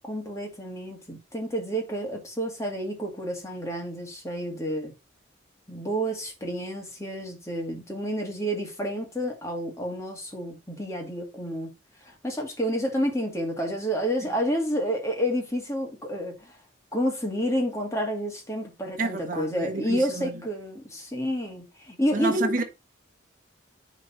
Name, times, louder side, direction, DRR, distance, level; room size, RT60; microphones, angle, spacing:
voice 1, 0.1-4.9 5.7-11.7 12.1-16.5 16.9-22.5, equal, 15° left, 2.4 m, -29 dB
voice 2, 19.0-20.4 22.1-22.6, right 2 dB, 45° right, 1.6 m, -29 dB
9.8 x 4.2 x 4.2 m
head